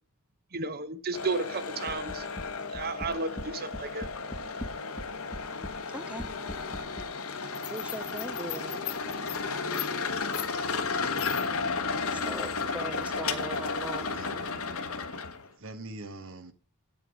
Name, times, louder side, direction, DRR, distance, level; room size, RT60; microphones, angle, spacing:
voice 1, 0.5-2.3 2.7-4.1, right 3 dB, 45° right, 0.9 m, -33 dB
sound 1, 1.1-15.5, left 4 dB, 70° left, 1.2 m, -33 dB
sound 2, 1.9-2.5 2.7-3.5 3.7-5.1 5.3-5.8 6.2-7.1, left 1 dB, 20° left, 1.0 m, -39 dB
voice 2, 5.9-6.3 7.7-8.8 11.9-14.1, right 1 dB, 5° right, 0.4 m, -40 dB
voice 3, 14.0-14.6 15.6-16.5, right 2 dB, 60° right, 1.3 m, -43 dB
8.8 x 7.7 x 5.2 m
head